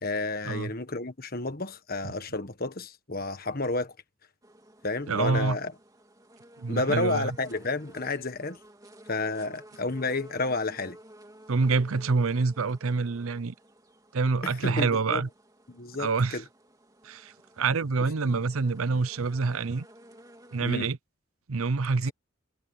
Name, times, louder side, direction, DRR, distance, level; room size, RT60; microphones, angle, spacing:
voice 1, 0.0-3.9 4.8-5.7 6.7-8.6 9.1-11.0 14.4-15.2 15.7-16.4 18.2-18.4 20.6-20.9, left 3 dB, 45° left, 1.6 m, -31 dB
sound 1, 4.4-20.8, right 1 dB, 15° right, 2.9 m, -53 dB
voice 2, 5.1-5.6 6.6-7.3 11.5-13.5 14.1-15.3 16.0-16.4 17.0-19.9 20.5-21.0 21.5-22.1, right 4 dB, 75° right, 0.7 m, -26 dB
head